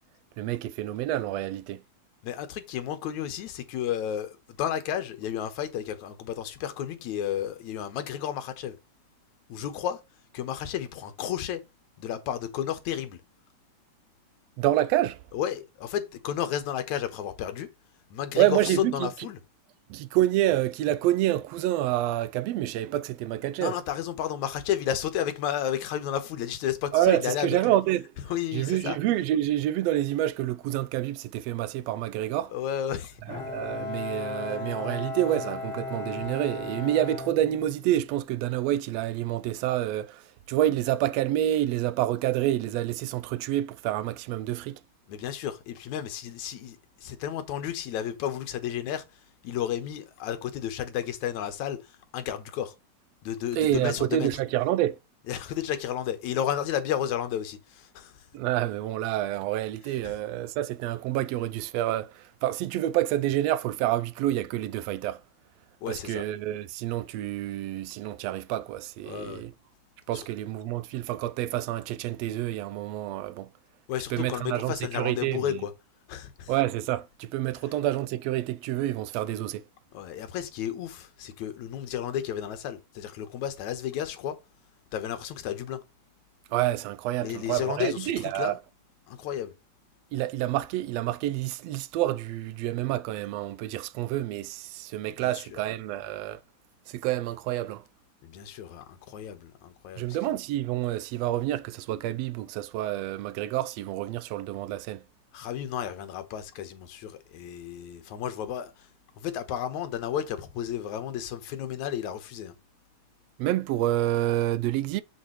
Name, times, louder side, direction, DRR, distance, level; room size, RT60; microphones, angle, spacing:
voice 1, 0.4-1.8 14.6-15.2 18.3-19.1 19.9-23.8 26.9-28.1 28.5-32.5 33.5-44.8 53.6-55.0 58.3-65.2 65.9-69.5 70.1-73.5 74.1-75.6 76.5-79.6 86.5-88.6 90.1-96.4 96.9-97.8 100.0-105.0 113.4-115.0, right 13 dB, 80° right, 1.6 m, -28 dB
voice 2, 2.2-8.8 9.5-10.0 10.3-11.7 12.0-13.2 15.3-17.7 18.1-19.4 23.6-27.7 28.3-29.0 32.5-33.2 45.1-49.1 49.4-52.8 53.2-54.3 55.3-58.3 65.8-66.2 69.0-69.4 70.1-70.3 73.9-75.7 76.1-76.5 79.9-84.4 84.9-85.8 87.2-88.6 89.1-89.5 95.2-95.6 98.2-100.2 105.3-108.9 109.2-112.5, left 10 dB, 75° left, 2.5 m, -32 dB
Bowed string instrument, 33.3-38.1, left 4 dB, 50° left, 3.1 m, -36 dB
7.0 x 7.0 x 3.1 m
omnidirectional pair, 3.4 m